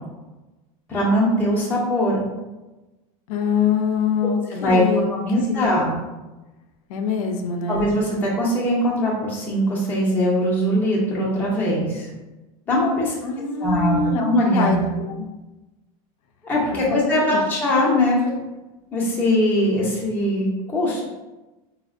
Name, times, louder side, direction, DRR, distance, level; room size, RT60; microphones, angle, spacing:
voice 1, 0.9-2.2 4.5-4.8 5.1-5.9 7.7-12.1 12.7-13.1 13.6-14.8 16.4-18.3 18.9-21.0, equal, 10° left, -5 dB, 0.5 m, -21 dB
voice 2, 3.3-5.7 6.9-7.8 13.2-14.2 14.5-15.3 16.9-17.4, left 6 dB, 75° left, 4 dB, 0.5 m, -24 dB
4.2 x 2.0 x 2.4 m, 1.1 s
supercardioid pair, 175°, 18 cm